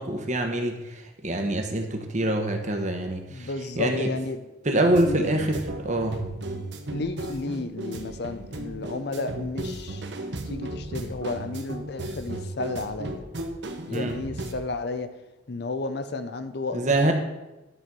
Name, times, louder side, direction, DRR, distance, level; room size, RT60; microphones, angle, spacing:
voice 1, 0.0-3.5 3.8-4.1 4.6-6.2 13.9-14.2 16.7-17.1, right 1 dB, 40° right, 4 dB, 1.1 m, -25 dB
voice 2, 3.3-4.4 5.1-5.5 6.9-10.0 10.4-13.2 13.9-15.1 15.5-16.8 17.1-17.2, left 3 dB, 55° left, 10 dB, 0.6 m, -32 dB
sound 1, 4.9-14.5, right 1 dB, 60° right, 0.9 m, -35 dB
11.0 x 4.3 x 6.1 m, 1.0 s
head